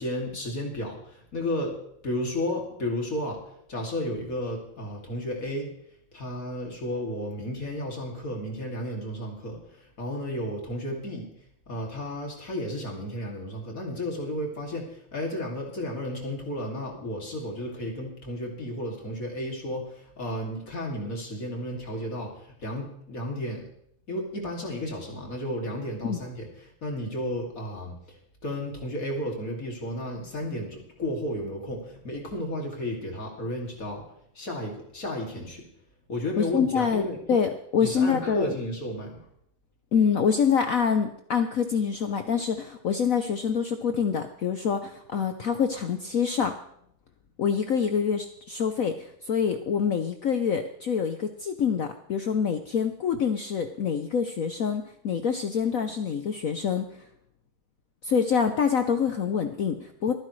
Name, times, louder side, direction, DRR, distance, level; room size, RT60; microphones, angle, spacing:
voice 1, 0.0-1.8 2.0-3.4 3.7-5.7 6.1-11.3 11.7-23.7 24.1-34.0 34.3-35.7 36.1-37.2 37.8-39.2, left 1 dB, 40° left, 0 dB, 3.0 m, -33 dB
voice 2, 36.4-38.5 39.9-46.5 47.4-56.9 58.0-60.1, left 6 dB, 65° left, 7 dB, 0.8 m, -26 dB
26.5 x 9.9 x 3.2 m, 0.71 s
omnidirectional pair, 2.3 m